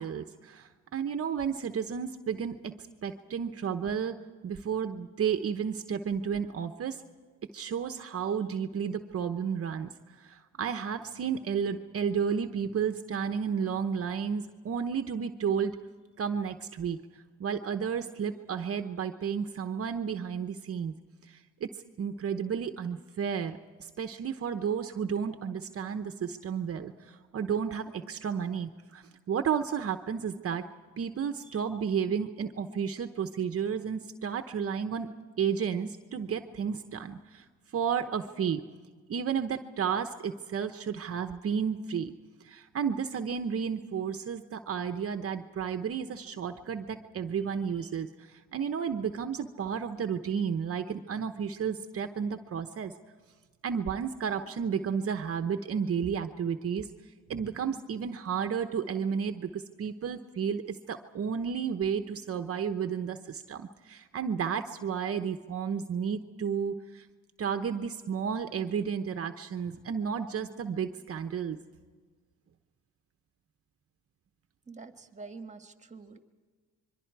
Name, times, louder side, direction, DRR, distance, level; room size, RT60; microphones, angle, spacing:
voice 1, 0.0-2.6 3.0-7.0 7.5-9.9 10.2-15.8 16.2-17.0 17.4-20.9 21.3-21.7 22.0-30.6 31.0-37.4 37.7-38.6 39.1-42.1 42.4-52.9 53.6-56.9 57.3-67.1 67.4-71.6, right 7 dB, 50° right, 7 dB, 1.0 m, -32 dB
voice 2, 74.7-76.2, right 4 dB, 25° right, 7 dB, 1.7 m, -46 dB
26.5 x 23.0 x 4.7 m, 1.5 s
cardioid pair, 90°, 30 cm